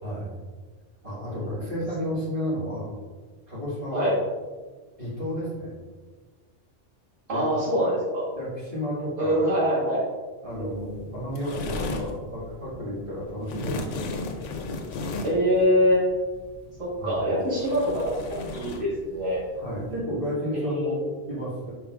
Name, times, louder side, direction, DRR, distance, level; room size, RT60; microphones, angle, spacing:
voice 1, 0.0-0.3 1.0-2.9 3.5-4.1 5.0-5.7 7.3-7.4 7.8-7.9 8.3-9.4 10.4-14.0 17.0-17.2 19.5-21.7, equal, 45° right, -9 dB, 1.8 m, -32 dB
voice 2, 7.3-8.3 9.2-10.0 10.6-11.0 15.2-16.0 16.8-19.4 20.6-21.0, equal, 85° right, -7 dB, 1.8 m, -24 dB
sound 1, 10.5-20.0, left 2 dB, 85° left, 0.9 m, -36 dB
5.5 x 3.9 x 2.4 m, 1.4 s
omnidirectional pair, 1.2 m